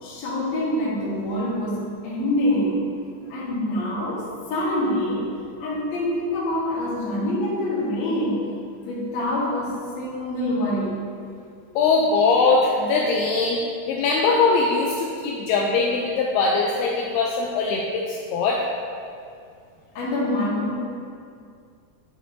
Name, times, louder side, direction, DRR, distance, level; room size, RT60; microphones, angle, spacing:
voice 1, 0.0-2.8 3.3-5.3 5.6-8.4 8.8-11.0 19.9-20.7, left 1 dB, 55° left, -8 dB, 2.2 m, -25 dB
voice 2, 11.8-13.6 13.9-18.6, left 4 dB, 85° left, -1 dB, 2.4 m, -21 dB
8.8 x 4.9 x 2.7 m, 2.3 s
omnidirectional pair, 4.6 m